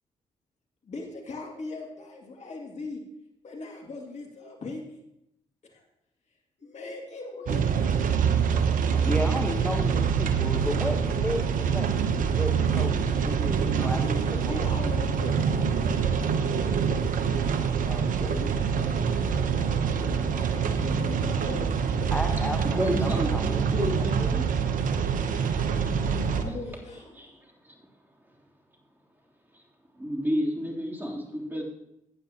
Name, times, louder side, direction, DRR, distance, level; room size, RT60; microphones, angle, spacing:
voice 1, 0.9-3.0 3.4-5.0 5.6-5.8 6.6-7.8 14.4-17.6 18.2-19.9 20.3-22.2 26.3-27.4, left 3 dB, 50° left, 1 dB, 2.3 m, -40 dB
sound 1, 7.5-26.4, right 6 dB, 60° right, 0.9 m, -25 dB
voice 2, 8.5-12.0 12.3-14.7 17.9-18.3 22.1-24.1, left 1 dB, 10° left, 3 dB, 1.2 m, -34 dB
voice 3, 22.5-24.5 25.7-25.9 26.4-26.6 27.1-27.7 30.0-31.6, equal, 15° right, -2 dB, 3.3 m, -31 dB
15.0 x 9.1 x 2.9 m, 0.81 s
hypercardioid pair, 45°, 15 cm